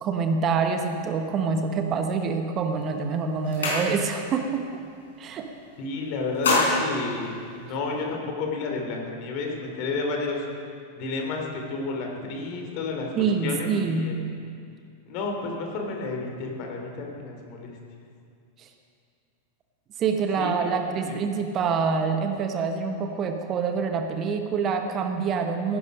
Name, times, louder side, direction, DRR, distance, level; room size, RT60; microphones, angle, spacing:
voice 1, 0.0-4.6 5.2-5.5 13.2-14.1 18.6-18.7 20.0-25.8, right 5 dB, 30° right, 5 dB, 1.0 m, -26 dB
sound 1, 2.6-2.8 3.2-4.3 4.7-4.9 5.2-5.8 6.1-8.0, left 2 dB, 65° left, 4.2 m, -27 dB
voice 2, 5.8-10.4 11.0-13.1 13.4-14.2 15.1-17.7 20.4-20.8 21.1-21.2, left 3 dB, 45° left, 1 dB, 2.9 m, -31 dB
17.0 x 11.0 x 5.3 m, 2.3 s
figure-of-eight pair, 90°, 0 cm